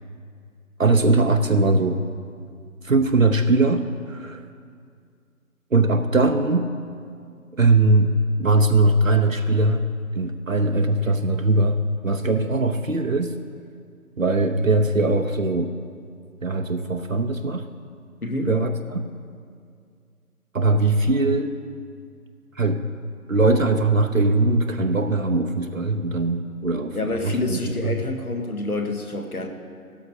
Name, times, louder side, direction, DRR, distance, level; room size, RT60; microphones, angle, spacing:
voice 1, 0.8-2.0 2.8-4.4 5.7-6.7 7.6-8.1 8.4-9.8 10.1-13.3 14.2-15.8 16.4-17.7 18.5-19.0 20.5-21.5 22.6-22.8 23.3-27.0 27.2-27.9, right 2 dB, 60° right, 6 dB, 0.8 m, -20 dB
voice 2, 18.2-18.6 26.9-29.5, left 2 dB, 75° left, 4 dB, 1.5 m, -27 dB
16.0 x 13.0 x 2.7 m, 2.2 s
figure-of-eight pair, 165°, 45 cm